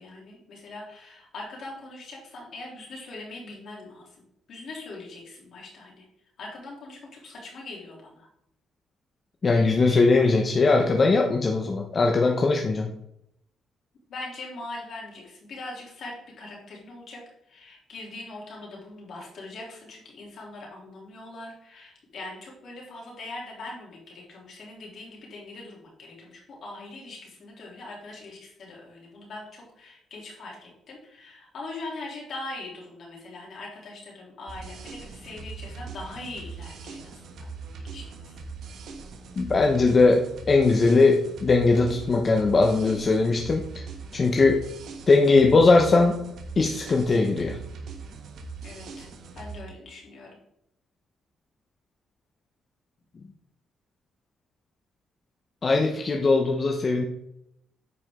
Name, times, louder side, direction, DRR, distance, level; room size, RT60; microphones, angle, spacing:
voice 1, 0.0-4.2 4.5-6.1 6.4-8.3 14.1-37.5 37.8-38.4 48.6-49.1 49.3-50.4, left 2 dB, 65° left, -2 dB, 3.2 m, -41 dB
voice 2, 9.4-12.9 39.4-43.6 44.1-44.6 45.1-46.2 46.6-47.6 55.6-57.1, left 3 dB, 40° left, 2 dB, 0.9 m, -20 dB
sound 1, 34.5-49.6, right 4 dB, 70° right, 1.3 m, -41 dB
9.5 x 5.0 x 3.7 m, 0.77 s
cardioid pair, 90°, 0 cm